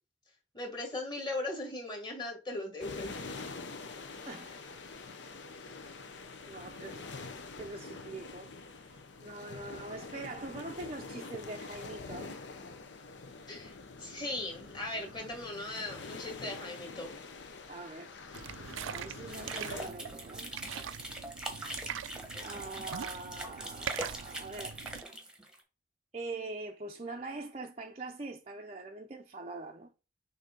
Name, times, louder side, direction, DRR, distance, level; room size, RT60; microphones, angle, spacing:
voice 1, 0.5-3.2 13.5-17.2, left 2 dB, 20° left, 1.8 m, -38 dB
sound 1, 2.8-19.9, left 3 dB, 65° left, 0.8 m, -45 dB
voice 2, 4.3-4.8 6.5-8.9 9.2-12.4 17.7-18.2 18.9-20.5 22.4-24.8 26.1-29.9, right 2 dB, 30° right, 0.5 m, -43 dB
sound 2, 18.3-25.0, right 8 dB, 80° right, 0.4 m, -42 dB
sound 3, 19.3-25.6, right 1 dB, 5° right, 1.0 m, -42 dB
6.6 x 2.8 x 5.1 m
head